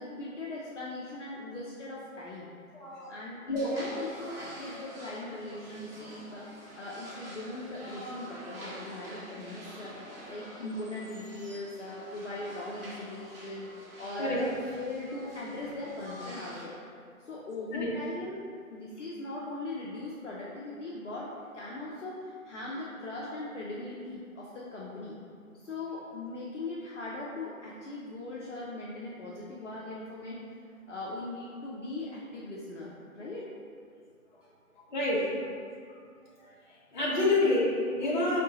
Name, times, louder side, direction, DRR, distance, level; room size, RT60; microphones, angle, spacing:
voice 1, 0.0-2.5 3.1-6.5 6.8-9.9 10.3-13.7 14.0-16.8 17.2-18.4 18.7-25.2 25.6-30.4 30.9-33.5, left 2 dB, 55° left, -5 dB, 0.7 m, -40 dB
voice 2, 2.7-3.1 3.5-3.7 14.2-14.4 17.7-17.9 34.9-35.2 36.9-38.4, left 2 dB, 35° left, -6 dB, 0.9 m, -27 dB
sound 1, 3.6-16.6, right 1 dB, 40° right, 1.0 m, -47 dB
4.6 x 3.5 x 2.8 m, 2.2 s
figure-of-eight pair, 155°, 43 cm